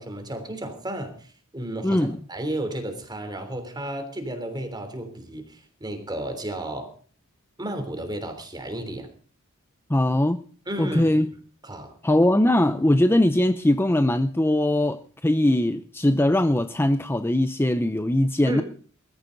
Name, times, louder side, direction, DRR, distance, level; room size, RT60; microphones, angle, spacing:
voice 1, 0.0-6.9 7.6-9.1 10.7-11.2 11.6-12.0 18.5-18.6, right 1 dB, 20° right, 7 dB, 3.3 m, -33 dB
voice 2, 1.8-2.2 9.9-10.4 10.8-11.3 12.0-18.6, left 1 dB, 10° left, 10 dB, 0.6 m, -21 dB
20.5 x 14.0 x 4.0 m, 0.43 s
head